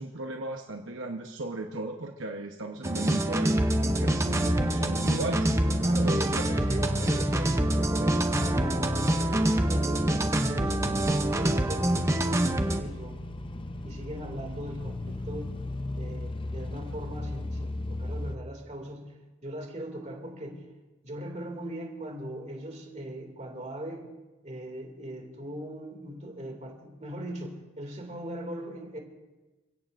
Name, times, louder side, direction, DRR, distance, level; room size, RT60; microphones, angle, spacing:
voice 1, 0.0-3.5 4.0-5.5 5.9-6.8, right 2 dB, 70° right, 3 dB, 1.0 m, -36 dB
sound 1, 2.8-12.8, right 1 dB, 15° right, 0.7 m, -26 dB
sound 2, 3.6-18.4, left 2 dB, 25° left, 0.6 m, -36 dB
voice 2, 5.8-13.2 13.8-15.5 16.0-20.6 21.0-24.1 24.4-29.0, right 1 dB, 35° right, 2 dB, 2.5 m, -39 dB
29.0 x 16.5 x 2.6 m, 1.2 s
head